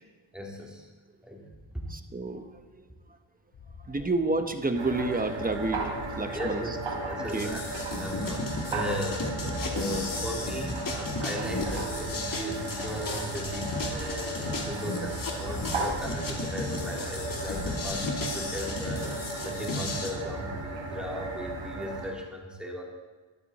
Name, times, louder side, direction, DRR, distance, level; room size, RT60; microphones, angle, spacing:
voice 1, 0.3-0.9 1.2-1.9 6.3-6.7 7.0-7.6 8.0-22.8, left 1 dB, ahead, -2 dB, 3.1 m, -37 dB
sound 1, 1.5-2.9 3.5-5.1 5.5-7.2 7.5-9.1 9.5-11.1 11.5-13.1 13.4-15.0 15.4-17.1 17.4-19.1, left 4 dB, 70° left, 3.4 m, -46 dB
voice 2, 1.9-2.8 3.9-5.9 6.2-6.6 7.2-7.6, right 2 dB, 15° right, 7 dB, 1.1 m, -30 dB
sound 2, 4.7-22.1, right 2 dB, 85° right, 3.9 m, -35 dB
sound 3, 7.3-20.1, left 3 dB, 40° left, 2.8 m, -35 dB
23.0 x 13.0 x 4.3 m, 1.3 s
wide cardioid pair, 160°, 49 cm